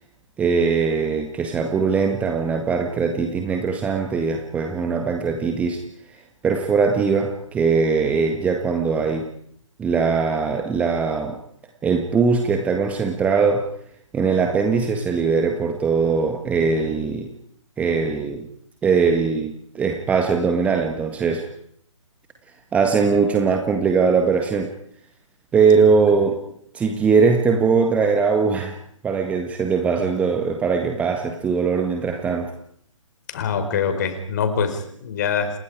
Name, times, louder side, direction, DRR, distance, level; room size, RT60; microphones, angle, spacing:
voice 1, 0.4-9.3 9.8-11.4 11.8-13.7 14.1-17.3 17.8-18.5 18.8-21.5 22.7-24.7 25.5-26.4 26.7-28.8 29.0-32.5, right 5 dB, 10° right, 5 dB, 1.6 m, -21 dB
voice 2, 33.3-35.5, left 6 dB, 35° left, 8 dB, 4.6 m, -24 dB
29.5 x 29.5 x 4.9 m, 0.66 s
figure-of-eight pair, 140°, 17 cm